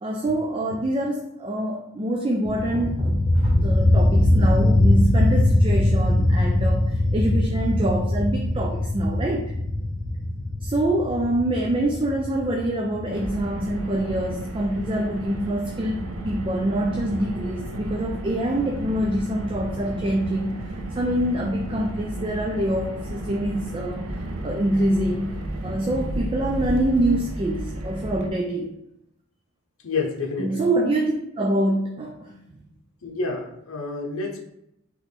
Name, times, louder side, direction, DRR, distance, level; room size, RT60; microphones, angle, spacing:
voice 1, 0.0-9.5 10.6-24.1 24.4-28.7 30.4-32.6, right 1 dB, 25° right, 1 dB, 0.3 m, -25 dB
sound 1, 2.5-14.0, left 1 dB, 35° left, 0.5 m, -21 dB
Car, 13.1-28.3, right 1 dB, 85° right, 0.6 m, -32 dB
voice 2, 29.8-30.7 33.0-34.4, left 3 dB, 75° left, 1 dB, 0.8 m, -29 dB
3.4 x 3.0 x 4.0 m, 0.80 s
head